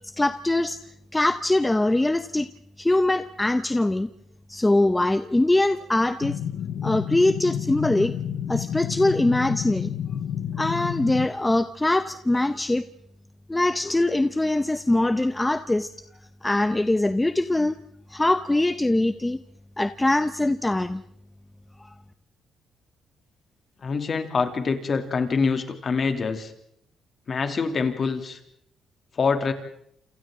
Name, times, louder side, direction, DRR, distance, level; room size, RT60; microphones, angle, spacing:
voice 1, 0.2-0.8 1.1-2.5 2.8-4.1 4.5-6.4 6.8-8.1 8.5-9.9 10.6-12.9 13.5-15.9 16.4-17.8 18.1-19.4 19.8-21.0, left 2 dB, 15° left, 11 dB, 0.8 m, -22 dB
sound 1, 6.2-11.3, left 9 dB, 70° left, 0.9 m, -30 dB
voice 2, 23.8-26.5 27.3-28.4 29.2-29.5, left 5 dB, 45° left, 7 dB, 2.7 m, -25 dB
28.5 x 27.0 x 3.8 m, 0.71 s
cardioid pair, 90°, 0 cm